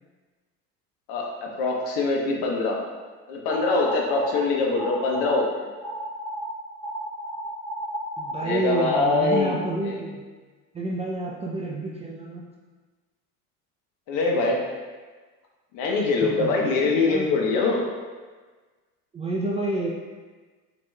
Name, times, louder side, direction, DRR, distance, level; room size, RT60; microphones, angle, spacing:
voice 1, 1.1-2.8 3.3-5.7 8.4-9.6 9.8-10.0 14.1-14.6 15.7-17.8, left 3 dB, 60° left, -1 dB, 1.1 m, -23 dB
sound 1, 3.5-4.4 4.8-5.5 5.8-6.5 6.8-9.5, right 1 dB, 10° left, 1.0 m, -33 dB
voice 2, 8.2-10.2 10.7-12.5 16.2-17.3 19.1-19.9, right 2 dB, 15° right, -3 dB, 0.4 m, -29 dB
6.0 x 3.0 x 2.4 m, 1.4 s
hypercardioid pair, 80°, 46 cm